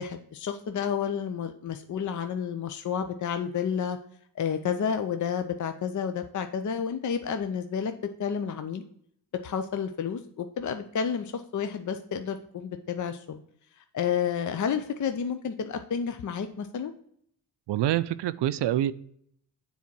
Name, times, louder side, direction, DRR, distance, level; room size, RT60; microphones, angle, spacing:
voice 1, 0.0-4.0 4.4-7.9 8.2-8.8 9.4-13.4 13.9-16.9, left 7 dB, 45° left, 8 dB, 0.6 m, -30 dB
voice 2, 17.7-18.9, right 12 dB, 75° right, 16 dB, 0.5 m, -26 dB
7.1 x 4.1 x 6.0 m, 0.67 s
cardioid pair, 90°, 42 cm